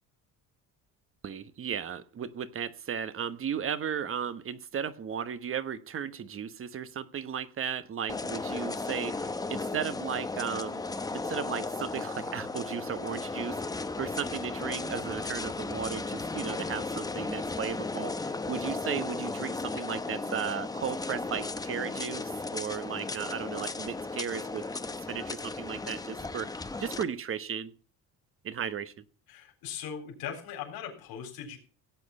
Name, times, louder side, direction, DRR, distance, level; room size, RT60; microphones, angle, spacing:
voice 1, 1.2-10.8 11.1-24.6 25.1-26.5 26.8-27.7 28.4-28.9, right 8 dB, 35° right, 13 dB, 1.1 m, -35 dB
sound 1, 8.1-27.0, left 3 dB, 10° left, 0.8 m, -35 dB
voice 2, 29.3-31.6, left 8 dB, 80° left, 2 dB, 4.1 m, -39 dB
16.5 x 8.5 x 5.4 m, 0.38 s
cardioid pair, 140°, 36 cm